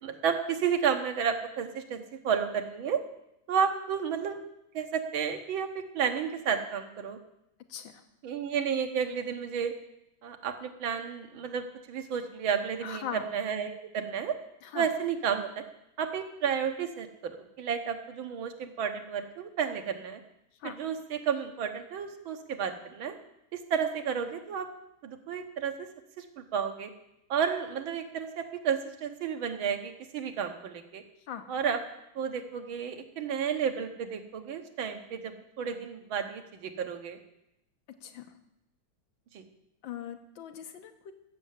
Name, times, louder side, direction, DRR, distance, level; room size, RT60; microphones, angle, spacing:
voice 1, 0.0-3.0 3.5-4.4 4.7-7.2 8.2-9.7 10.2-14.4 14.7-15.6 16.0-20.2 20.6-23.2 23.5-24.7 25.0-25.9 26.2-26.9 27.3-31.0 31.5-31.8 32.2-37.2 39.3-39.5, right 7 dB, 80° right, 6 dB, 2.0 m, -32 dB
voice 2, 7.7-8.0 12.8-13.3 14.6-14.9 20.6-20.7 31.3-31.5 38.0-38.4 39.8-41.1, left 9 dB, 75° left, 6 dB, 1.8 m, -40 dB
15.0 x 6.7 x 7.4 m, 0.84 s
omnidirectional pair, 2.2 m